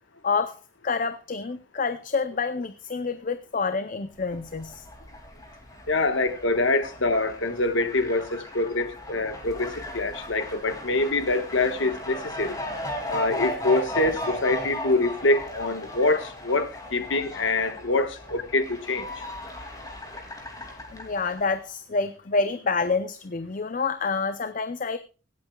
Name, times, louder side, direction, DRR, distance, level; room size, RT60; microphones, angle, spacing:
voice 1, 0.2-4.9 20.9-25.0, left 4 dB, 40° left, 0.6 m, -28 dB
Fowl, 4.2-21.6, left 1 dB, 20° left, 2.6 m, -37 dB
voice 2, 5.9-12.6 13.1-19.1, left 2 dB, 75° left, 1.4 m, -25 dB
24.5 x 8.4 x 2.3 m
head